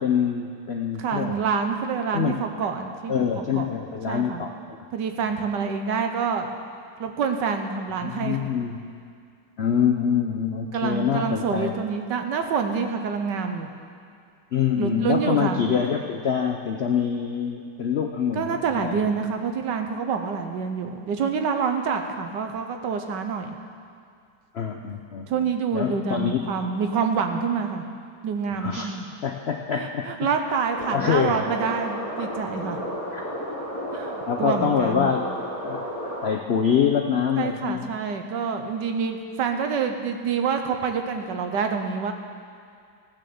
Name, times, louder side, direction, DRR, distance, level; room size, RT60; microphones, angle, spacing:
voice 1, 0.0-1.4 2.1-2.4 3.1-4.8 8.0-8.8 9.6-11.7 14.5-19.0 24.5-26.4 28.6-28.9 29.2-30.1 30.9-31.4 33.1-33.2 34.3-35.3 35.6-37.9, left 7 dB, 70° left, 3 dB, 0.6 m, -25 dB
voice 2, 1.0-3.7 4.1-4.4 4.9-6.5 7.0-8.4 10.7-13.7 14.8-15.6 18.3-23.6 25.3-27.9 28.2-29.1 29.7-32.8 33.9-35.1 37.4-42.1, right 6 dB, 80° right, 5 dB, 1.6 m, -27 dB
sound 1, 30.7-36.3, equal, 20° right, 2.4 m, -32 dB
15.5 x 6.8 x 7.0 m, 2.3 s
omnidirectional pair, 1.9 m